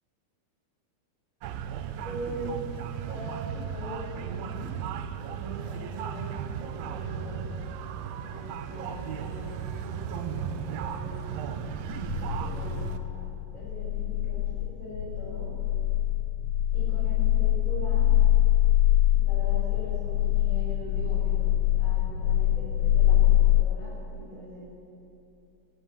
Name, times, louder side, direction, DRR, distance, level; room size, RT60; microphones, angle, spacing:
sound 1, 1.4-13.0, right 7 dB, 75° right, 2.5 m, -35 dB
voice 1, 2.0-2.8 3.0-4.8 5.2-7.6 8.0-11.6 12.4-15.5 16.7-18.1 19.1-24.7, equal, 20° right, -7 dB, 6.0 m, -41 dB
sound 2, 11.9-23.6, left 12 dB, 85° left, 2.6 m, -24 dB
17.5 x 17.0 x 9.3 m, 2.7 s
omnidirectional pair, 4.5 m